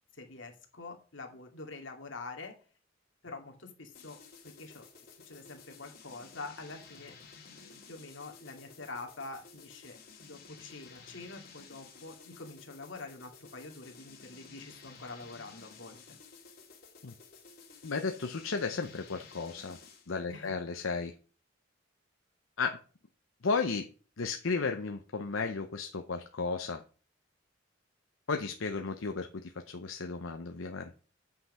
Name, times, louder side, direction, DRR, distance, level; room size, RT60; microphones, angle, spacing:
voice 1, 0.2-2.6 3.2-4.2 4.4-4.8 5.3-7.1 7.5-16.0 20.3-20.5, left 3 dB, 70° left, 3 dB, 2.3 m, -46 dB
sound 1, 4.0-20.2, left 5 dB, 50° left, 2.6 m, -54 dB
voice 2, 17.8-19.8 20.1-21.1 22.6-22.8 23.4-23.9 24.2-26.8 28.3-30.9, left 4 dB, 85° left, 5 dB, 0.8 m, -34 dB
8.8 x 5.8 x 5.6 m, 0.38 s
head